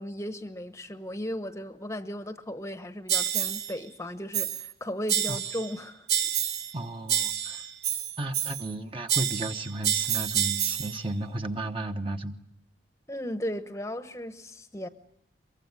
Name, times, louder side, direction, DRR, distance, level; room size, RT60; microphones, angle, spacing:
voice 1, 0.0-6.1 13.1-14.9, equal, 15° left, 10 dB, 1.0 m, -36 dB
sound 1, 3.1-3.7 4.3-4.7 5.1-5.7 6.1-6.8 7.1-8.7 9.1-11.0, right 10 dB, 65° right, 1.2 m, -28 dB
voice 2, 6.7-7.7 8.2-12.4, right 2 dB, 30° right, 6 dB, 1.2 m, -34 dB
23.5 x 23.5 x 9.6 m, 0.72 s
head